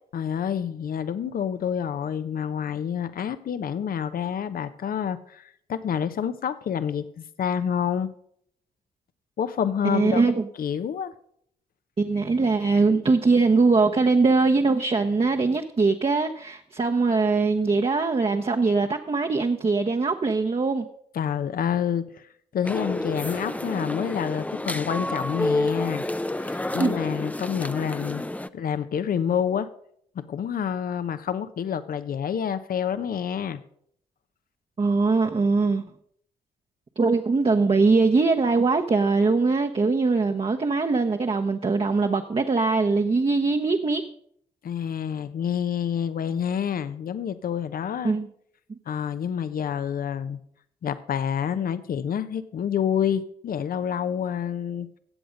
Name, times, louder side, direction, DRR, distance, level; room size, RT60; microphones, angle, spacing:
voice 1, 0.1-8.1 9.4-10.2 10.6-11.1 21.1-22.3 22.5-26.0 26.4-28.2 28.5-29.7 30.1-33.6 44.6-48.1 48.9-50.4 50.8-54.9, left 8 dB, 60° left, 13 dB, 0.9 m, -28 dB
voice 2, 9.8-10.4 12.0-20.9 26.8-26.9 34.8-35.8 37.0-44.0 48.0-48.3, right 3 dB, 35° right, 3 dB, 1.0 m, -22 dB
sound 1, 22.6-28.5, left 1 dB, 10° left, 0.6 m, -29 dB
15.5 x 7.9 x 5.2 m, 0.68 s
supercardioid pair, 50°, 17 cm